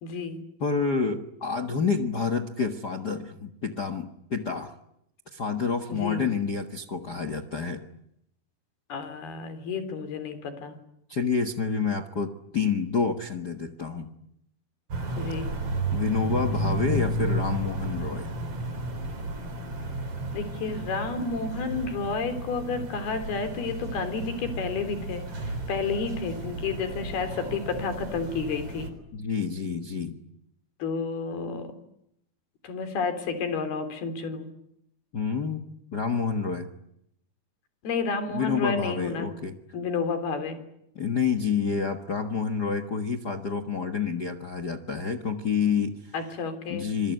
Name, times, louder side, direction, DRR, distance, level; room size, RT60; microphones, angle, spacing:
voice 1, 0.0-0.4 5.9-6.2 8.9-10.8 15.2-15.5 20.3-28.9 30.8-31.7 32.6-34.5 37.8-39.3 39.7-40.6 46.1-46.9, left 4 dB, 80° left, 9 dB, 5.6 m, -31 dB
voice 2, 0.6-4.7 5.3-7.8 11.1-14.1 15.9-18.3 29.1-30.2 35.1-35.6 35.9-36.7 38.3-39.6 40.9-46.1 46.7-47.1, left 5 dB, 55° left, 11 dB, 1.1 m, -28 dB
sound 1, 14.9-28.9, right 1 dB, 40° right, 4.7 m, -33 dB
27.0 x 23.5 x 9.3 m, 0.78 s
omnidirectional pair, 4.4 m